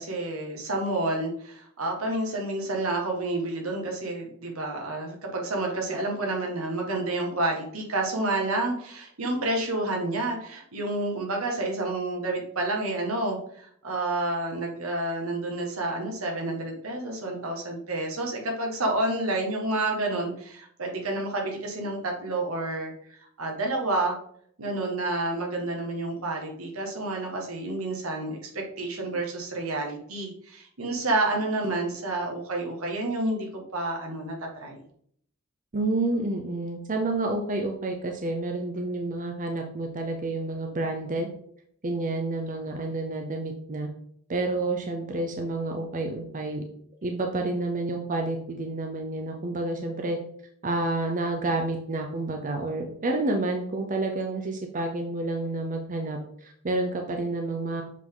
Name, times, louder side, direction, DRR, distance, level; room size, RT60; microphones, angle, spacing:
voice 1, 0.0-24.2 24.6-34.8, right 2 dB, 75° right, 0 dB, 1.6 m, -29 dB
voice 2, 35.7-41.3 41.8-43.9 44.3-46.6 47.0-50.2 50.6-57.8, right 2 dB, 40° right, 3 dB, 0.7 m, -29 dB
7.3 x 4.0 x 3.8 m, 0.65 s
head